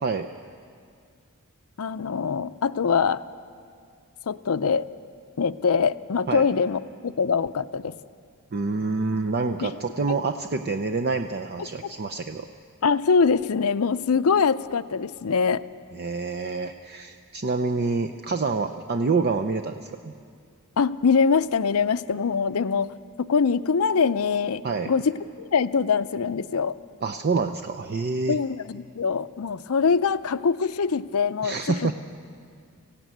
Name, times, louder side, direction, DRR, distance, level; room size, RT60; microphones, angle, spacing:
voice 1, 1.8-3.2 4.3-4.9 5.4-8.0 9.6-9.7 11.8-11.9 12.8-15.6 20.8-26.8 28.3-31.9, left 5 dB, 75° left, 13 dB, 0.5 m, -23 dB
voice 2, 8.5-12.5 15.9-20.1 24.6-24.9 27.0-28.4 31.4-31.9, right 4 dB, 45° right, 7 dB, 0.6 m, -27 dB
20.0 x 16.0 x 9.2 m, 2.2 s
head